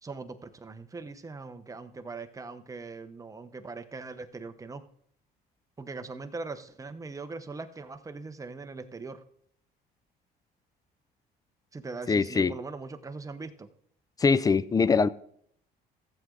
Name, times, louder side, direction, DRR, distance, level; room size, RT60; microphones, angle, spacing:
voice 1, 0.0-4.8 5.8-9.2 11.7-13.7, right 3 dB, 20° right, 1.0 m, -41 dB
voice 2, 12.1-12.5 14.2-15.1, left 5 dB, 20° left, 0.4 m, -22 dB
14.5 x 7.7 x 3.9 m
cardioid pair, 110°, 17 cm